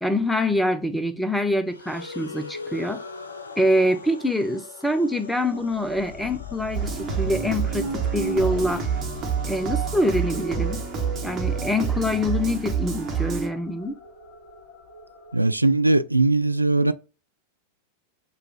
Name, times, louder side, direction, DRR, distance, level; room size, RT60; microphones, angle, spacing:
voice 1, 0.0-3.0 3.6-8.9 9.5-10.8 11.2-14.0, left 1 dB, 5° left, 0.7 m, -25 dB
sound 1, 1.7-11.9, left 4 dB, 75° left, 0.7 m, -42 dB
sound 2, 2.4-15.4, left 8 dB, 30° left, 1.9 m, -45 dB
sound 3, 6.7-13.5, right 6 dB, 25° right, 1.2 m, -27 dB
voice 2, 15.3-16.9, right 2 dB, 85° right, 0.3 m, -20 dB
6.7 x 2.5 x 2.9 m
figure-of-eight pair, 90°, 0 cm